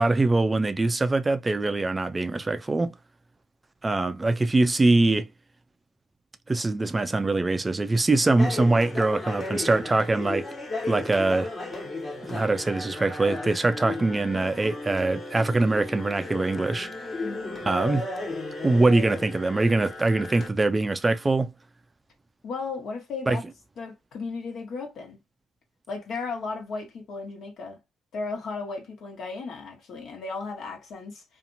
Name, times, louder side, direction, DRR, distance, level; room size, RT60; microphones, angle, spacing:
voice 1, 0.0-2.9 3.8-5.3 6.5-10.5 10.9-11.5 12.2-17.1 17.6-18.1 18.6-21.5 23.3-23.4, right 2 dB, 20° right, 0.4 m, -23 dB
sound 1, 8.4-20.5, left 2 dB, 35° left, 1.1 m, -35 dB
voice 2, 17.2-17.6 22.4-23.4 23.8-25.2 25.9-27.8 28.1-31.2, left 4 dB, 70° left, 1.2 m, -35 dB
2.7 x 2.5 x 2.5 m
cardioid pair, 90°, 0 cm